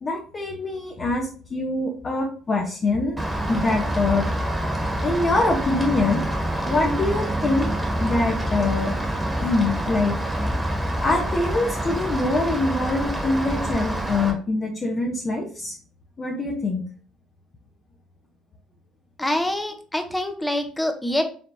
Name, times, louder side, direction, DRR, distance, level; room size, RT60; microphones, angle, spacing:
voice 1, 0.0-3.2 3.5-4.3 5.0-6.2 6.6-7.7 8.0-8.9 9.4-10.2 10.4-10.6 11.0-15.8 16.2-16.8, left 2 dB, 35° left, -1 dB, 1.1 m, -24 dB
Rain, 3.2-14.3, right 1 dB, 10° right, 1.7 m, -26 dB
voice 2, 19.2-21.2, left 1 dB, 10° left, 6 dB, 0.9 m, -25 dB
5.5 x 3.3 x 2.8 m, 0.41 s
hypercardioid pair, 55°, 0 cm